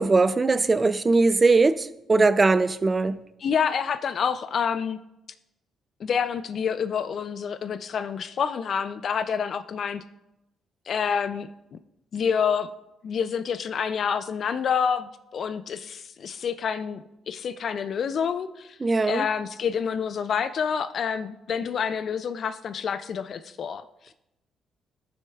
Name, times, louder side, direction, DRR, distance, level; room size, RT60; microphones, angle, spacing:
voice 1, 0.0-3.2 18.8-19.2, right 3 dB, 30° right, 14 dB, 0.4 m, -20 dB
voice 2, 3.4-5.0 6.0-10.0 10.9-11.8 12.1-12.7 13.0-18.8 19.1-23.8, left 7 dB, 55° left, 11 dB, 0.3 m, -28 dB
11.5 x 6.3 x 2.3 m, 0.89 s
cardioid pair, 90°, 0 cm